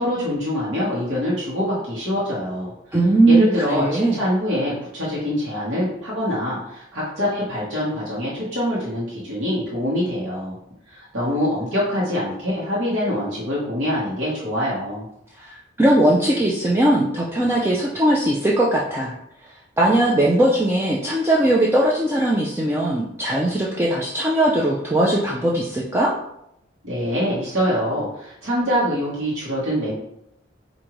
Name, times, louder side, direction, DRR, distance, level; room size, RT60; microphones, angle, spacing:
voice 1, 0.0-2.7 3.3-10.6 10.9-15.0 26.8-29.9, equal, 75° right, -7 dB, 1.2 m, -24 dB
voice 2, 2.9-4.2 15.4-19.1 19.4-26.1, right 1 dB, 10° right, -4 dB, 0.3 m, -19 dB
4.8 x 2.6 x 3.0 m, 0.79 s
head